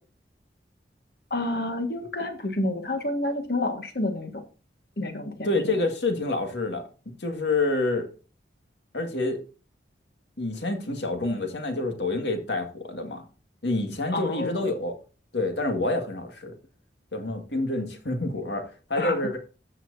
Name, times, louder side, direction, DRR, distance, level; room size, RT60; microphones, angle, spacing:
voice 1, 1.3-4.3 5.0-5.7 14.1-14.7 19.0-19.1, left 2 dB, 60° left, 1.7 m, -29 dB
voice 2, 5.4-6.9 7.2-8.1 8.9-9.4 10.4-13.2 13.6-15.0 15.3-16.5 17.1-19.4, left 2 dB, 80° left, 2.0 m, -27 dB
15.0 x 6.0 x 2.7 m
head